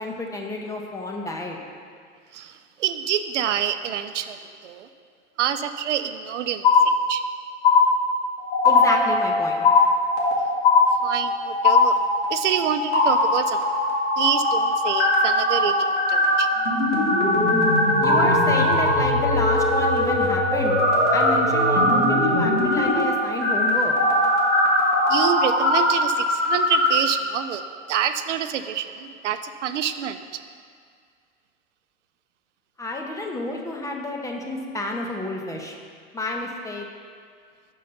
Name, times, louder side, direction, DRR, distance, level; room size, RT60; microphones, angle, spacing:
voice 1, 0.0-1.6 8.7-9.6 18.0-20.8 21.1-23.9 32.8-35.8 36.1-36.9, left 2 dB, 10° left, 1 dB, 0.5 m, -30 dB
voice 2, 2.3-4.9 5.4-7.2 11.0-12.0 12.3-13.6 14.2-16.5 25.1-30.2, right 10 dB, 80° right, 9 dB, 0.5 m, -27 dB
sound 1, 6.6-7.3 7.6-8.3 8.6-9.3 9.6-10.3 10.6-11.3 11.6-12.2, left 5 dB, 45° left, 0.7 m, -17 dB
sound 2, 8.4-9.8 10.0-10.3 10.9-26.9, left 1 dB, 80° left, 1.9 m, -21 dB
5.4 x 5.1 x 5.7 m, 2.1 s
hypercardioid pair, 105°, 35 cm